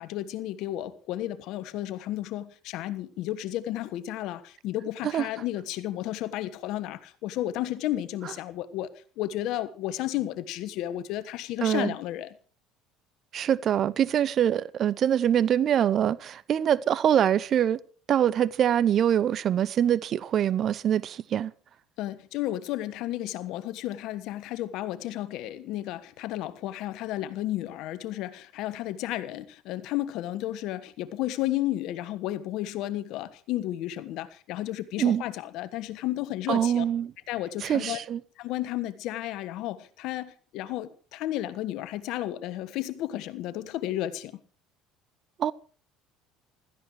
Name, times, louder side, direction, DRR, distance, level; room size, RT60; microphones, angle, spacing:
voice 1, 0.0-12.3 22.0-36.8 37.3-38.0 38.4-44.4, left 14 dB, 65° left, 1.3 m, -33 dB
voice 2, 11.6-11.9 13.3-17.8 18.1-21.5 35.0-35.2 36.5-37.1 37.6-38.2 45.4-45.5, right 9 dB, 50° right, 0.8 m, -24 dB
16.0 x 13.5 x 4.8 m
hypercardioid pair, 70°, 0 cm